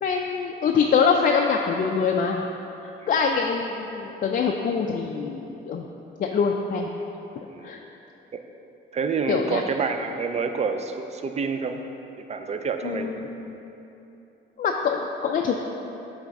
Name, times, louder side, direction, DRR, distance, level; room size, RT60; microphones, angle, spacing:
voice 1, 0.0-2.4 2.8-5.9 6.2-7.0 7.6-7.8 9.3-9.6 12.8-13.6 14.6-15.6, left 5 dB, 45° left, 1 dB, 0.4 m, -24 dB
voice 2, 8.9-11.9 12.2-13.1, right 5 dB, 35° right, 7 dB, 0.4 m, -28 dB
8.0 x 3.4 x 3.6 m, 3.0 s
cardioid pair, 90°, 20 cm